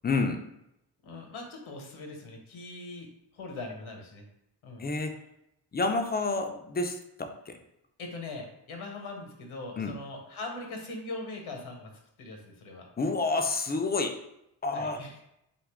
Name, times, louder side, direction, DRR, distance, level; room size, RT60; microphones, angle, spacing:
voice 1, 0.0-0.4 4.8-5.2 5.7-7.5 9.8-9.9 13.0-14.2 14.6-15.0, left 3 dB, 20° left, 6 dB, 0.3 m, -29 dB
voice 2, 1.0-3.1 3.3-4.2 4.6-5.0 8.0-11.9 12.2-12.9 14.7-15.2, left 2 dB, 70° left, 3 dB, 0.9 m, -41 dB
2.7 x 2.4 x 3.4 m, 0.81 s
supercardioid pair, 40°, 50 cm